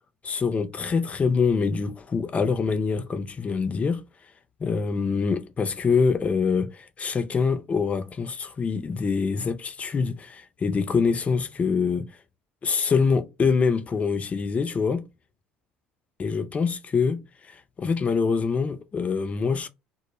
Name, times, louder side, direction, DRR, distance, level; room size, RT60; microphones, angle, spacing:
voice 1, 0.2-4.0 4.6-12.1 12.6-15.0 16.2-17.2 17.5-19.7, left 5 dB, 30° left, 0.4 m, -25 dB
2.1 x 2.0 x 3.1 m
hypercardioid pair, 60°, 4 cm